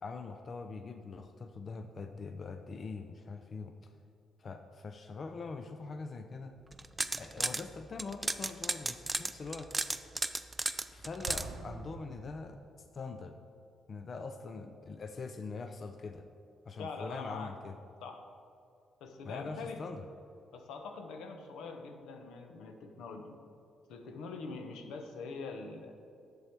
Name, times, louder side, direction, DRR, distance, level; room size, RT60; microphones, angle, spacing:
voice 1, 0.0-3.7 4.4-6.6 7.2-9.7 10.9-12.6 12.9-13.4 13.9-16.3 16.7-17.8 19.2-20.1, left 4 dB, 45° left, 7 dB, 0.4 m, -43 dB
sound 1, 6.7-7.6 8.0-11.4, right 2 dB, 15° right, 0.4 m, -34 dB
Explosion, 11.3-13.0, right 4 dB, 90° right, 0.6 m, -46 dB
voice 2, 16.8-17.5 18.0-18.3 19.0-19.9 20.5-23.4 23.9-26.0, left 4 dB, 85° left, 5 dB, 0.8 m, -43 dB
7.8 x 7.0 x 4.5 m, 2.6 s
cardioid pair, 90°, 0 cm